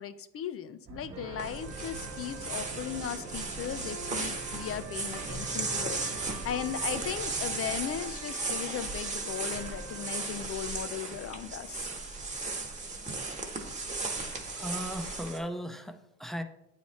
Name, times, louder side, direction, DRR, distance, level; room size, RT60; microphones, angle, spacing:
voice 1, 0.0-11.9, left 9 dB, 50° left, 12 dB, 0.4 m, -37 dB
sound 1, 0.9-7.8, right 4 dB, 55° right, 1.0 m, -46 dB
sound 2, 1.1-10.4, right 3 dB, 90° right, 0.9 m, -45 dB
sound 3, 1.4-15.4, right 3 dB, 25° right, 1.0 m, -36 dB
voice 2, 14.5-16.4, equal, ahead, 7 dB, 0.6 m, -37 dB
8.3 x 3.2 x 4.1 m, 0.82 s
cardioid pair, 90°, 30 cm